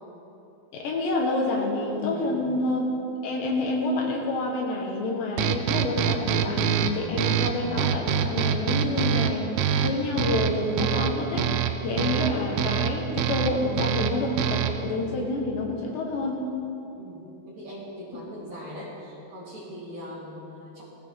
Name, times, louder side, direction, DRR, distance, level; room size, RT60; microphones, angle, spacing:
voice 1, 0.7-2.8 3.2-9.5 9.8-11.5 11.8-16.5, left 2 dB, 70° left, -1 dB, 3.3 m, -28 dB
voice 2, 2.1-2.6 17.0-20.8, left 1 dB, 40° right, -7 dB, 3.3 m, -41 dB
sound 1, 5.4-14.9, right 9 dB, 85° right, 3.0 m, -26 dB
20.0 x 15.0 x 3.6 m, 2.9 s
omnidirectional pair, 5.6 m